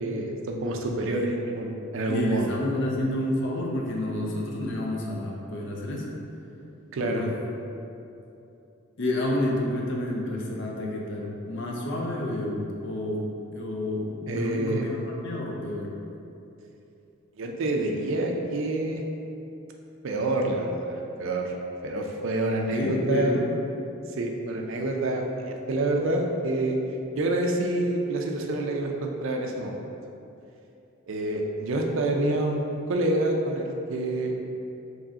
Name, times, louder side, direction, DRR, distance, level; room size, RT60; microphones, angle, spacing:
voice 1, 0.0-2.5 6.9-7.2 14.3-14.8 17.4-19.0 20.0-20.9 21.2-21.5 21.8-23.4 24.1-26.8 27.1-29.8 31.1-32.6 32.9-34.4, right 2 dB, 65° right, 2 dB, 0.5 m, -27 dB
voice 2, 1.1-1.5 2.1-6.1 7.0-7.3 9.0-13.3 13.5-15.9 22.7-23.5, left 1 dB, 60° left, -2 dB, 0.6 m, -29 dB
4.8 x 3.1 x 2.8 m, 2.8 s
head